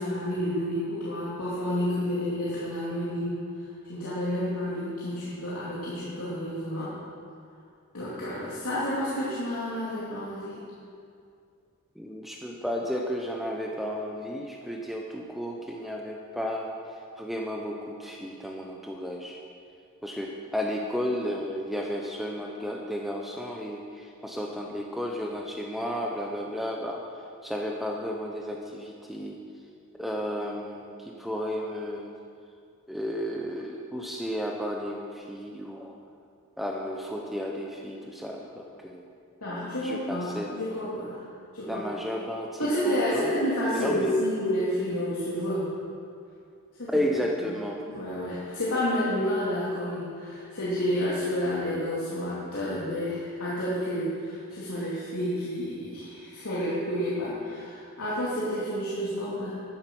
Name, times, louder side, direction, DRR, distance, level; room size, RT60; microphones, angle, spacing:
voice 1, 0.0-6.9 7.9-10.6 39.4-41.3 41.5-41.8 42.6-45.7 46.8-47.0 47.9-59.6, equal, 85° left, -9 dB, 2.7 m, -30 dB
voice 2, 12.0-19.4 20.0-29.4 30.0-32.2 32.9-36.0 36.6-39.0 39.5-40.5 41.7-43.4 43.7-44.1 46.9-47.8, equal, ahead, 0 dB, 0.7 m, -33 dB
11.0 x 10.0 x 6.1 m, 2.4 s
head